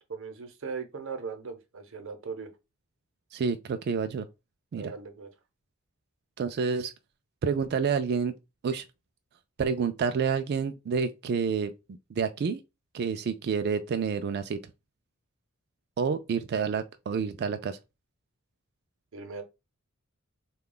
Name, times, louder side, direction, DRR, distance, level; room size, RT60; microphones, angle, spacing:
voice 1, 0.1-2.5 4.7-5.3 19.1-19.4, right 5 dB, 65° right, 0.8 m, -38 dB
voice 2, 3.3-4.3 4.7-4.9 6.4-6.9 7.4-8.3 8.6-8.8 9.6-11.7 12.1-12.6 12.9-14.6 16.0-17.8, right 6 dB, 50° right, 0.3 m, -28 dB
3.6 x 2.3 x 3.8 m
head